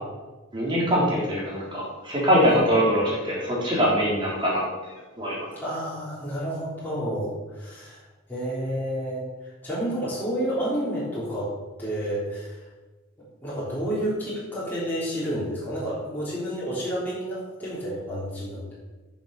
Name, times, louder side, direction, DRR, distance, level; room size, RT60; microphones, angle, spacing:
voice 1, 0.5-5.6, equal, 25° right, -5 dB, 3.5 m, -23 dB
voice 2, 5.6-8.0 8.3-9.3 9.6-11.5 11.8-12.6 13.4-18.8, equal, 10° left, -9 dB, 3.5 m, -30 dB
10.5 x 6.3 x 6.6 m, 1.2 s
head